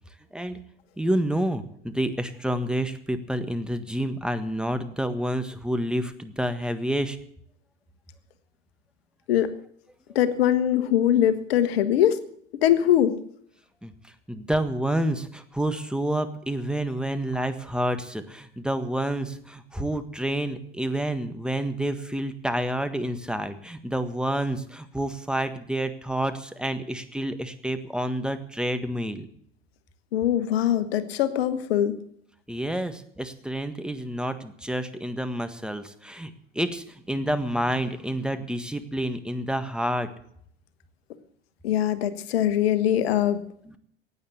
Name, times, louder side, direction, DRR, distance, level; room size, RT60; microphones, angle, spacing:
voice 1, 0.3-0.6 1.0-7.2 13.8-29.2 32.5-40.1 43.6-43.8, right 1 dB, 5° right, 9 dB, 1.6 m, -29 dB
voice 2, 10.1-12.2 12.6-13.1 30.1-32.0 41.6-43.4, left 11 dB, 70° left, 12 dB, 1.3 m, -22 dB
16.0 x 9.5 x 8.1 m, 0.66 s
hypercardioid pair, 70°, 31 cm